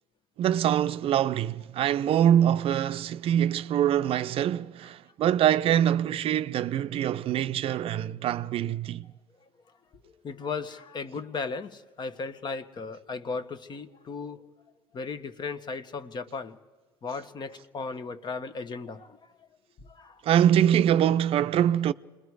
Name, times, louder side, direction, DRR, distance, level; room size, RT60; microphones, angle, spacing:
voice 1, 0.4-9.1 20.2-21.9, right 10 dB, 55° right, 0.6 m, -24 dB
voice 2, 10.0-14.4 14.9-16.6 17.0-19.2 19.8-20.2, left 4 dB, 40° left, 1.3 m, -36 dB
28.0 x 21.0 x 4.8 m
supercardioid pair, 80°, 12 cm